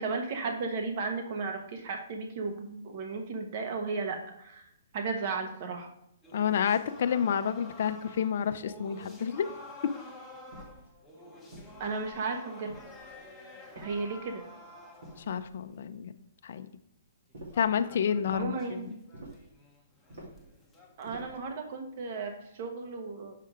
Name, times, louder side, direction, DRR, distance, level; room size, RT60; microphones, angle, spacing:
voice 1, 0.0-5.9 11.8-12.7 13.8-14.4 18.3-19.0 21.0-23.3, right 4 dB, 45° right, 4 dB, 1.1 m, -35 dB
sound 1, 6.2-15.5 17.3-21.2, left 1 dB, ahead, 0.9 m, -50 dB
voice 2, 6.3-9.5 15.3-16.1 16.4-16.7 17.6-18.8, left 8 dB, 60° left, 9 dB, 0.5 m, -29 dB
sound 2, 10.5-10.9 11.5-12.2 12.7-13.2 13.7-14.4 15.0-15.7 17.3-17.7 18.2-18.5 19.1-19.5 20.1-20.5 21.0-21.5, right 1 dB, 80° right, 2.9 m, -48 dB
6.5 x 5.5 x 3.6 m, 0.76 s
hypercardioid pair, 155°, 0 cm